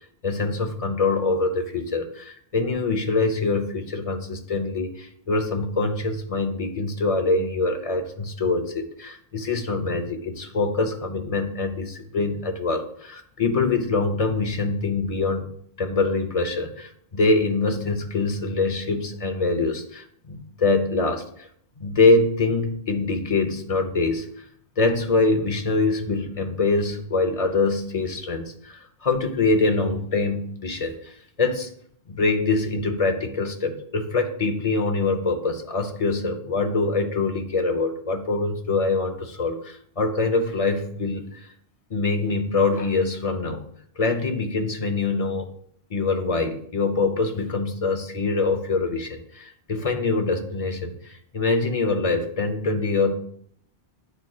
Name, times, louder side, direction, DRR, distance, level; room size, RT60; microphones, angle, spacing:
voice 1, 0.2-15.5 15.8-21.5 21.8-24.4 24.8-31.7 32.1-41.5 41.9-43.7 44.0-45.5 45.9-53.1, left 3 dB, 40° left, 6 dB, 0.7 m, -24 dB
9.8 x 4.4 x 2.3 m, 0.62 s
omnidirectional pair, 1.0 m